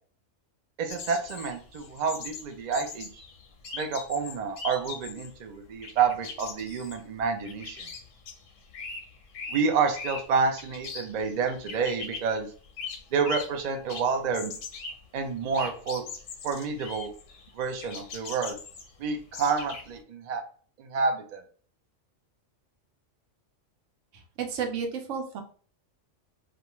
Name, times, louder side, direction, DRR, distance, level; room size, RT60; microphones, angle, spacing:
voice 1, 0.8-3.1 3.7-7.9 9.5-12.5 13.1-14.5 15.1-16.0 16.4-17.1 17.5-18.6 19.0-20.4 20.8-21.4, right 5 dB, 60° right, 5 dB, 0.4 m, -29 dB
sound 1, 0.9-5.3 5.6-13.6 13.9-20.0, left 5 dB, 90° left, 1.0 m, -41 dB
voice 2, 24.1-25.4, right 6 dB, 80° right, 4 dB, 1.0 m, -32 dB
2.4 x 2.3 x 2.9 m, 0.42 s
omnidirectional pair, 1.3 m